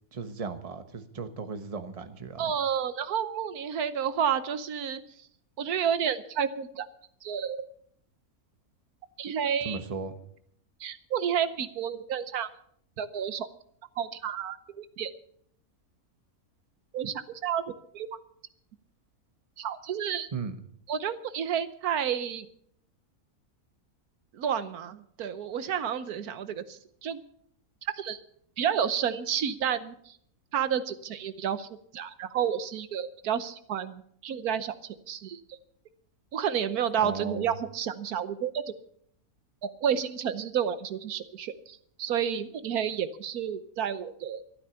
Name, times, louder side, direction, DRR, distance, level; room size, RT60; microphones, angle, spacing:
voice 1, 0.1-2.5 9.6-10.1 20.3-20.6 37.0-37.5, right 4 dB, 25° right, 9 dB, 1.1 m, -36 dB
voice 2, 2.4-5.0 5.6-6.9 7.2-7.6 9.2-9.8 10.8-12.5 13.0-13.5 14.0-15.1 16.9-18.1 19.6-20.3 20.9-22.5 24.3-27.2 27.9-28.2 28.6-30.2 30.5-35.4 36.3-38.6 39.6-44.4, right 8 dB, 80° right, 12 dB, 1.4 m, -30 dB
13.0 x 12.5 x 6.9 m, 0.66 s
omnidirectional pair, 1.6 m